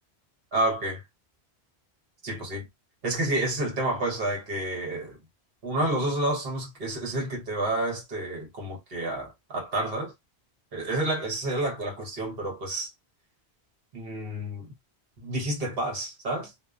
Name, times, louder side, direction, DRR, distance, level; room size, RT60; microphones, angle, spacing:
voice 1, 0.5-1.0 2.2-2.7 3.0-5.2 5.6-10.1 10.7-12.9 13.9-14.7 15.2-16.5, right 1 dB, 60° right, 1.3 m, -29 dB
2.8 x 2.1 x 2.3 m
omnidirectional pair, 1.1 m